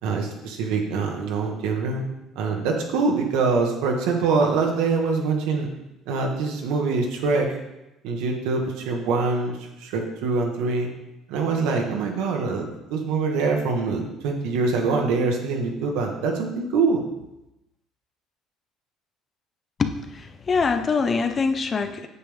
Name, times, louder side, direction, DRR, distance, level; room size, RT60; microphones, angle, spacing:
voice 1, 0.0-2.0 2.3-5.7 6.1-7.6 8.0-10.9 11.3-17.1, right 4 dB, 90° right, 2 dB, 1.6 m, -24 dB
voice 2, 19.8-22.1, left 4 dB, 25° left, 8 dB, 0.6 m, -24 dB
8.6 x 7.3 x 3.6 m, 0.93 s
cardioid pair, 145°, 0 cm